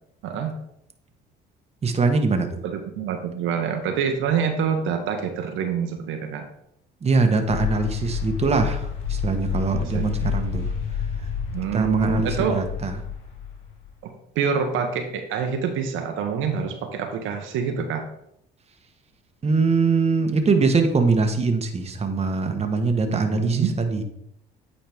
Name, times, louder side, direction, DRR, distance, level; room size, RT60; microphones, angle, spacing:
voice 1, 0.2-0.5 2.6-6.4 9.5-10.3 11.5-12.6 14.0-18.1 23.1-23.7, right 7 dB, 70° right, 4 dB, 1.1 m, -26 dB
voice 2, 1.8-2.5 7.0-10.7 11.7-12.9 19.4-24.0, right 4 dB, 30° right, 5 dB, 1.2 m, -22 dB
sound 1, 7.4-13.9, left 7 dB, 65° left, 2.1 m, -29 dB
9.0 x 4.3 x 3.5 m, 0.74 s
supercardioid pair, 75°, 21 cm